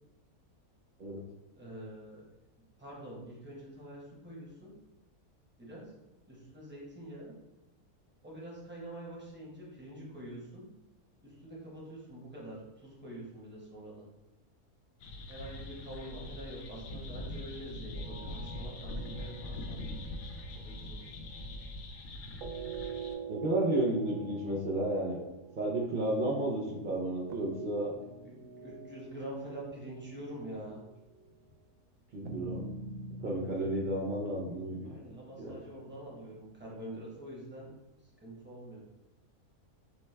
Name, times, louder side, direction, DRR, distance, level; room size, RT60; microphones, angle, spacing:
voice 1, 1.5-2.2 2.8-4.8 5.6-5.9 6.3-7.4 8.2-10.7 11.2-14.1 15.3-19.8 20.5-21.1 28.6-30.8 34.8-37.7 38.2-38.8, right 1 dB, 10° right, -5 dB, 0.8 m, -45 dB
sound 1, 15.0-23.1, left 1 dB, 70° left, 0.7 m, -42 dB
sound 2, 18.0-21.6 22.4-31.4 32.3-36.9, right 4 dB, 65° right, 0.8 m, -46 dB
voice 2, 23.3-25.2 25.6-27.9 32.1-32.6 33.2-35.0 35.4-35.6, right 1 dB, 85° right, -4 dB, 0.4 m, -32 dB
6.0 x 2.2 x 3.2 m, 1.0 s
omnidirectional pair, 1.7 m